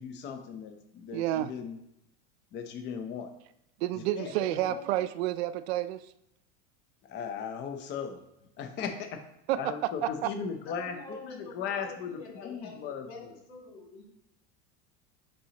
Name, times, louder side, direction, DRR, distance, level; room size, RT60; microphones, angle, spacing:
voice 1, 0.0-1.8 2.5-3.3 3.9-4.0 7.0-8.2 8.6-9.2 9.6-13.4, left 6 dB, 35° left, 6 dB, 0.7 m, -37 dB
voice 2, 1.1-1.5 3.8-6.1 9.5-10.3, right 13 dB, 90° right, 14 dB, 0.5 m, -30 dB
voice 3, 4.0-4.8 10.0-10.2 10.7-14.0, left 5 dB, 85° left, -2 dB, 2.3 m, -45 dB
8.7 x 4.1 x 2.9 m, 0.81 s
supercardioid pair, 145°, 31 cm